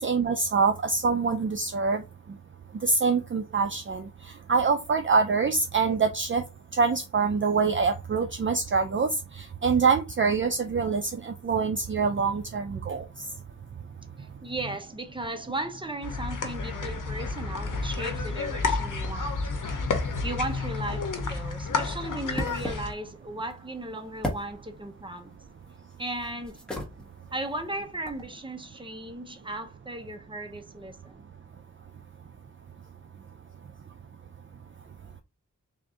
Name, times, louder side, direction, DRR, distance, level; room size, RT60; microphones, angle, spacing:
voice 1, 0.0-2.0 2.8-4.1 4.5-6.4 6.8-9.1 9.4-13.0, right 5 dB, 40° right, 0.4 m, -25 dB
voice 2, 14.2-19.4 20.2-25.3 26.0-26.6 27.3-31.3, right 2 dB, 15° right, 0.8 m, -36 dB
sound 1, 16.0-22.9, left 4 dB, 80° left, 0.8 m, -30 dB
sound 2, 20.6-28.3, equal, ahead, 1.2 m, -40 dB
3.5 x 2.6 x 3.7 m
wide cardioid pair, 60°, 31 cm